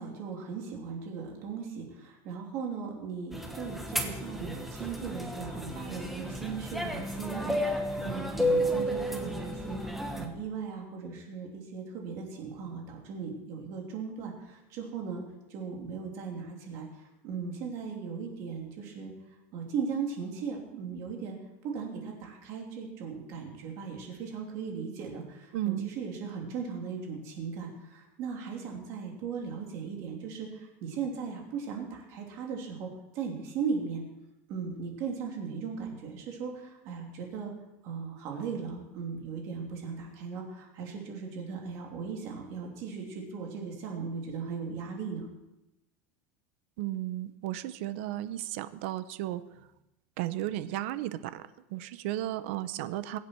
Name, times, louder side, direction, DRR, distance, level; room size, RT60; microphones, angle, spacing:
voice 1, 0.0-9.8 10.2-15.2 15.5-16.9 17.2-19.1 19.5-21.4 21.6-32.9 33.1-34.0 34.5-37.5 37.8-45.2, right 5 dB, 45° right, 0 dB, 3.0 m, -37 dB
sound 1, 3.3-10.3, equal, ahead, 1.2 m, -32 dB
voice 2, 25.5-25.9 46.8-49.4 50.2-53.2, right 14 dB, 60° right, 13 dB, 0.8 m, -34 dB
22.5 x 8.4 x 4.6 m, 0.94 s
supercardioid pair, 175°, 7 cm